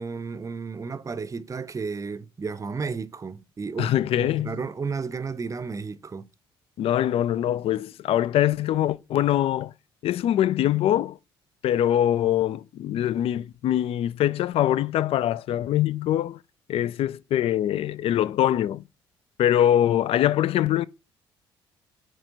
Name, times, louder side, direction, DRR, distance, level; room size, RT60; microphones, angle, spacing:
voice 1, 0.0-3.9 4.2-6.3, right 5 dB, 25° right, 0.6 m, -33 dB
voice 2, 3.8-4.6 6.8-9.7 10.0-11.2 11.6-16.4 16.7-18.8 19.4-20.9, left 11 dB, 50° left, 0.4 m, -23 dB
8.7 x 3.2 x 5.1 m
figure-of-eight pair, 50°, 13 cm